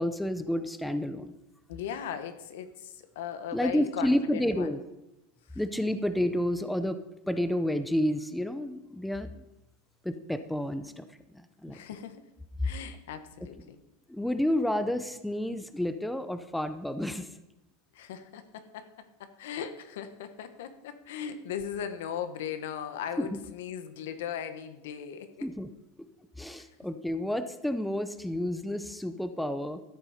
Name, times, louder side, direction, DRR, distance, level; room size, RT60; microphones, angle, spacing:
voice 1, 0.0-1.3 3.5-4.8 5.6-7.0 7.3-9.3 10.0-11.1 11.3-11.8 14.1-17.3 23.2-23.4 25.4-25.7 26.4-29.8, left 1 dB, ahead, 10 dB, 0.6 m, -30 dB
voice 2, 1.7-4.7 6.0-6.1 11.7-12.2 12.6-13.8 17.9-25.5, left 8 dB, 80° left, 9 dB, 1.3 m, -38 dB
13.5 x 8.0 x 5.0 m, 0.92 s
supercardioid pair, 150°, 0 cm